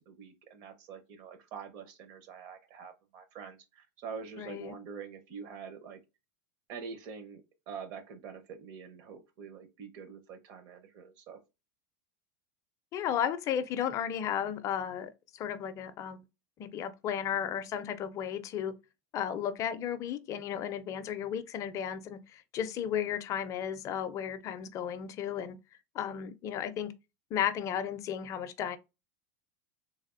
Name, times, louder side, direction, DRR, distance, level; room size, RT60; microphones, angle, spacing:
voice 1, 0.1-6.0 6.7-11.4, right 6 dB, 50° right, 0.8 m, -45 dB
voice 2, 4.4-4.7 12.9-16.2 16.6-18.7 19.1-25.6 25.9-26.9 27.3-28.8, left 9 dB, 35° left, 0.4 m, -34 dB
3.3 x 2.5 x 2.5 m
supercardioid pair, 135°, 10 cm